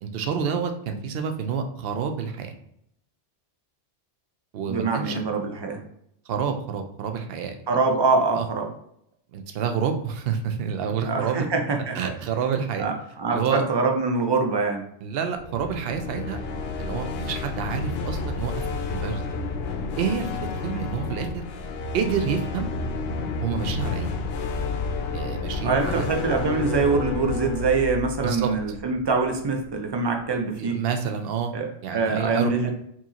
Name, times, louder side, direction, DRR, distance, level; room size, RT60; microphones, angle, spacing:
voice 1, 0.0-2.5 4.5-5.2 6.3-7.6 8.3-8.5 9.3-11.4 11.9-12.9 13.3-13.6 15.0-16.4 16.8-19.2 20.0-20.3 20.6-21.4 21.9-22.7 23.4-24.1 25.1-26.1 28.2-28.5 30.6-31.5 31.8-32.7, right 7 dB, 65° right, 6 dB, 0.8 m, -28 dB
voice 2, 4.7-5.8 7.7-8.7 11.0-12.1 12.8-14.8 20.7-20.8 25.6-30.8 31.5-32.7, right 4 dB, 40° right, 3 dB, 0.4 m, -24 dB
sound 1, 15.4-29.4, left 4 dB, 65° left, 0.7 m, -30 dB
4.5 x 2.9 x 2.9 m, 0.74 s
omnidirectional pair, 1.2 m